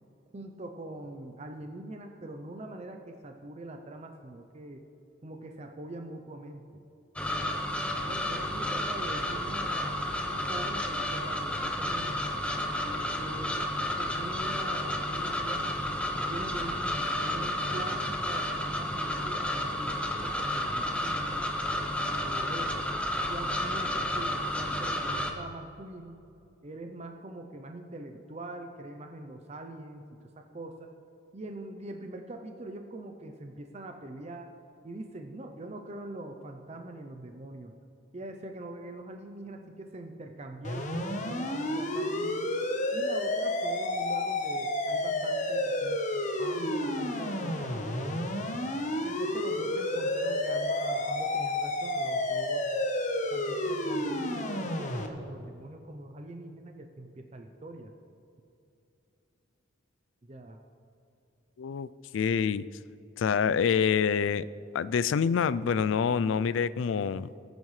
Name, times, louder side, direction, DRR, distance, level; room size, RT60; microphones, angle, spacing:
voice 1, 0.3-4.8 5.2-6.6 8.1-12.3 12.8-15.8 16.3-21.6 22.1-22.9 23.3-26.2 26.6-30.9 31.3-34.5 34.8-37.7 38.1-42.5 42.9-46.0 46.4-48.5 49.0-52.7 53.3-57.9 60.2-60.6, right 1 dB, 35° right, 5 dB, 0.6 m, -43 dB
sound 1, 7.2-25.3, left 1 dB, 5° left, 0.7 m, -31 dB
sound 2, 40.6-55.1, left 1 dB, 40° left, 1.0 m, -30 dB
voice 2, 61.6-61.9 62.1-62.6 63.2-64.4 64.7-67.3, left 6 dB, 70° left, 17 dB, 0.3 m, -26 dB
18.5 x 9.4 x 3.2 m, 2.7 s
head